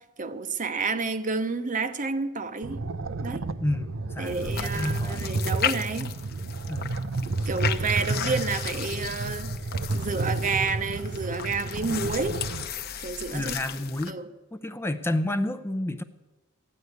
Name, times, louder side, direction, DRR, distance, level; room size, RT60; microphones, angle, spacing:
voice 1, 0.0-2.8 3.2-3.4 4.2-6.1 7.2-9.5 9.9-12.4 13.0-13.6 14.1-14.3, right 4 dB, 40° right, 0.8 m, -30 dB
sound 1, 2.6-12.6, right 3 dB, 70° right, 0.6 m, -31 dB
voice 2, 4.2-5.3 6.7-6.9 13.3-14.1 14.6-16.0, left 1 dB, 10° left, 0.5 m, -30 dB
sound 2, 4.3-14.1, left 8 dB, 50° left, 0.8 m, -35 dB
13.5 x 9.7 x 8.0 m
head